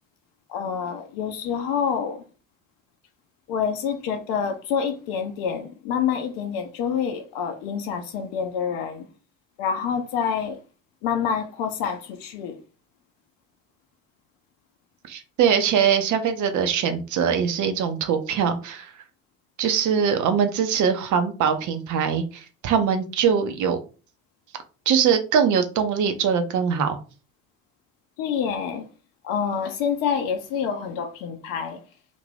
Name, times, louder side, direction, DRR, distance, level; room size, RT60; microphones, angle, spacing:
voice 1, 0.5-2.2 3.5-9.1 9.6-10.6 11.0-12.6 28.2-28.8 29.2-31.8, left 7 dB, 60° left, 0.6 m, -27 dB
voice 2, 15.1-18.9 19.6-23.8 24.9-27.0, right 7 dB, 50° right, 0.7 m, -22 dB
2.5 x 2.5 x 3.3 m
figure-of-eight pair, 50°, 40 cm